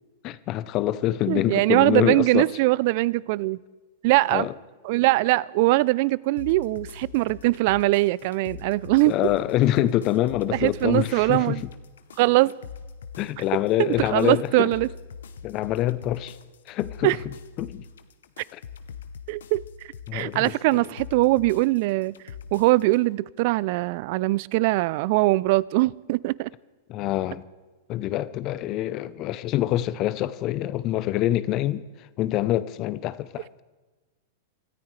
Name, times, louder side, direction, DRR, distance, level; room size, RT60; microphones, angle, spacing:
voice 1, 0.2-2.5 4.3-4.5 9.1-11.6 13.2-14.7 15.4-16.4 16.7-17.2 17.6-17.8 18.5-18.6 20.1-20.9 26.9-27.4 27.9-31.8 32.2-33.5, left 14 dB, 40° left, 0.6 m, -25 dB
voice 2, 1.3-3.6 4.0-4.5 4.8-9.1 10.5-11.6 12.2-12.5 13.8-14.9 17.0-17.2 19.3-19.6 20.1-22.1 22.5-26.5, right 20 dB, 55° right, 0.4 m, -22 dB
sound 1, 6.4-23.0, left 6 dB, 80° left, 0.9 m, -43 dB
26.0 x 14.0 x 3.3 m
hypercardioid pair, 110°, 0 cm